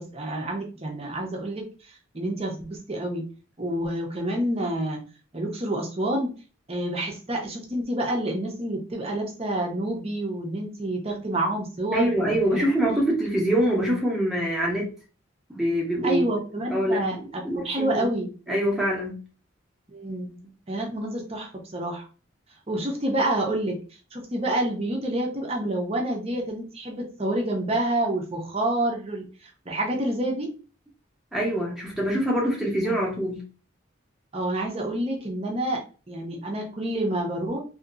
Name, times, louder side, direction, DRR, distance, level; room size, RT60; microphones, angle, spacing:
voice 1, 0.0-1.6 2.1-3.2 3.6-5.0 5.3-6.3 6.7-12.6 16.0-17.2 17.5-18.6 19.9-22.0 22.7-23.8 24.1-29.3 29.7-30.5 34.3-35.8 36.1-37.6, right 1 dB, 30° right, 1 dB, 0.7 m, -28 dB
voice 2, 11.9-14.9 15.5-16.2 16.7-18.1 18.5-19.2 31.3-33.4, right 1 dB, ahead, -3 dB, 0.9 m, -24 dB
2.8 x 2.8 x 2.5 m, 0.36 s
head